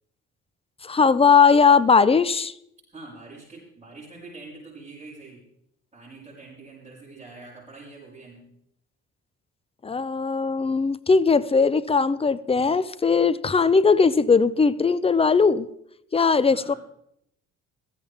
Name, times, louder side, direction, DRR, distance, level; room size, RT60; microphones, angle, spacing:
voice 1, 0.8-2.5 9.8-15.7 16.1-16.7, left 5 dB, 20° left, 18 dB, 0.6 m, -19 dB
voice 2, 2.9-5.5 5.9-8.6 16.5-16.8, right 3 dB, 20° right, -8 dB, 5.6 m, -44 dB
16.0 x 14.0 x 3.5 m, 0.74 s
cardioid pair, 90°, 30 cm